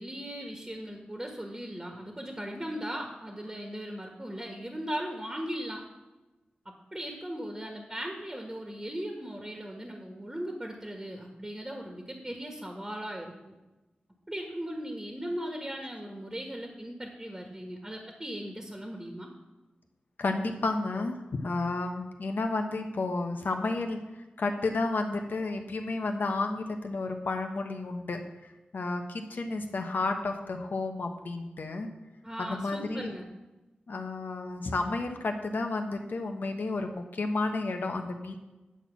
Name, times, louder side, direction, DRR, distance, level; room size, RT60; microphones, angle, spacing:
voice 1, 0.0-5.8 6.9-13.5 14.3-19.3 32.2-33.3, equal, 15° right, 1 dB, 1.4 m, -38 dB
voice 2, 20.2-21.2 21.4-24.0 24.4-31.9 32.4-33.1 33.9-38.4, left 3 dB, 80° left, 4 dB, 1.1 m, -31 dB
9.8 x 4.4 x 7.3 m, 1.1 s
wide cardioid pair, 80°, 3 cm